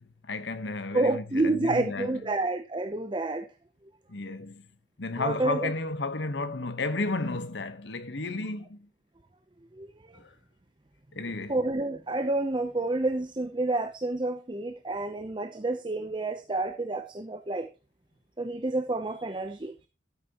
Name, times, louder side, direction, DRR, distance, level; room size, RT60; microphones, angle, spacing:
voice 1, 0.0-2.2 4.1-4.7 5.0-8.9 10.1-10.3 11.1-11.6, left 2 dB, 75° left, 1.2 m, -33 dB
voice 2, 0.9-3.5 4.3-4.4 5.2-5.7 9.7-10.2 11.5-17.7 18.4-19.9, right 2 dB, 25° right, 0.7 m, -29 dB
12.5 x 8.3 x 3.0 m
head